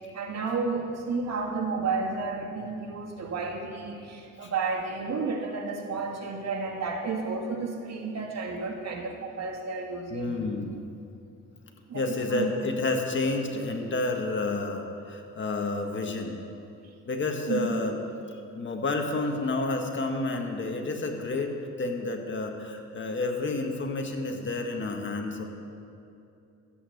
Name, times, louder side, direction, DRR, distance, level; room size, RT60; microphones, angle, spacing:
voice 1, 0.1-10.3 11.9-12.6 16.8-16.9 17.5-17.8, right 4 dB, 60° right, 1 dB, 2.1 m, -32 dB
voice 2, 10.1-10.8 11.9-16.4 17.1-18.0 18.5-25.4, left 3 dB, 40° left, 3 dB, 1.8 m, -30 dB
13.5 x 8.6 x 8.1 m, 2.6 s
cardioid pair, 90°, 30 cm